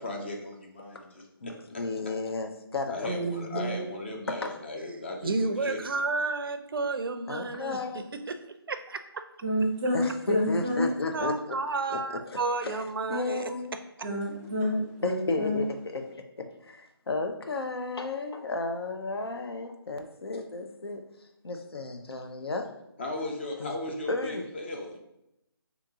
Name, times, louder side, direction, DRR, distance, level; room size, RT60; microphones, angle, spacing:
voice 1, 0.0-1.8 2.9-5.8 23.0-25.0, left 2 dB, 25° left, 1 dB, 0.5 m, -37 dB
voice 2, 1.4-3.1 4.3-4.5 7.3-8.1 9.9-11.6 11.9-12.0 12.3-12.7 13.1-13.7 15.0-21.0 21.4-22.7 23.6-23.7 24.1-24.4, left 3 dB, 75° left, 5 dB, 0.6 m, -33 dB
voice 3, 3.1-3.8 9.4-10.9 14.0-15.6, equal, 15° right, -3 dB, 0.7 m, -29 dB
voice 4, 5.2-7.8 8.3-8.4 8.7-9.0 11.1-13.5 14.0-14.1, right 3 dB, 65° right, 8 dB, 0.4 m, -31 dB
3.5 x 2.8 x 2.8 m, 0.83 s
figure-of-eight pair, 165°, 13 cm